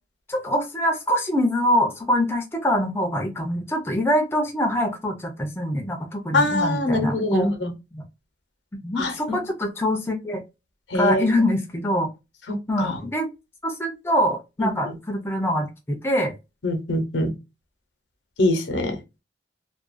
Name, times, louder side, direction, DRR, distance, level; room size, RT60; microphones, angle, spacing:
voice 1, 0.3-8.1 8.8-10.4 10.9-12.1 12.7-13.3 13.6-16.3, equal, 15° left, 3 dB, 0.4 m, -24 dB
voice 2, 6.3-7.5 9.0-9.4 10.9-11.3 12.5-13.0 14.6-14.9 16.6-17.3 18.4-19.0, left 1 dB, 85° left, 5 dB, 0.7 m, -23 dB
2.4 x 2.2 x 2.4 m, 0.25 s
head